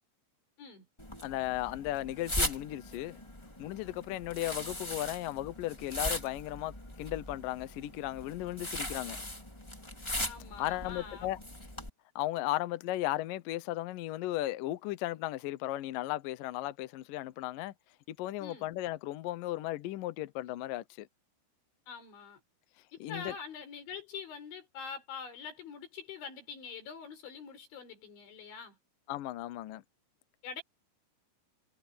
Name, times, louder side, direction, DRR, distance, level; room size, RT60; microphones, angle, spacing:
sound 1, 1.0-11.9, left 1 dB, 5° left, 2.7 m, -39 dB
voice 1, 1.2-3.2 3.6-9.2 10.6-11.4 12.2-17.7 18.1-21.1 23.0-23.3 29.1-29.8, left 15 dB, 90° left, 1.9 m, -36 dB
voice 2, 10.2-11.3 18.4-18.7 21.9-22.4 22.9-28.8 30.4-30.6, left 6 dB, 70° left, 7.6 m, -44 dB
omnidirectional pair, 5.5 m